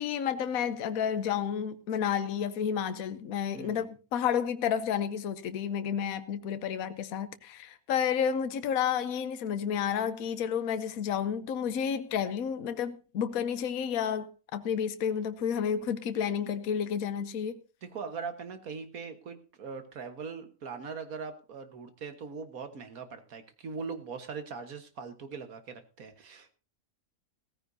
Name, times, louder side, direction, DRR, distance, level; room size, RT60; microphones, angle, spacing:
voice 1, 0.0-17.6, left 8 dB, 70° left, 1.2 m, -31 dB
voice 2, 3.5-3.9 17.8-26.5, right 5 dB, 70° right, 1.8 m, -41 dB
16.5 x 14.5 x 2.7 m
omnidirectional pair, 1.6 m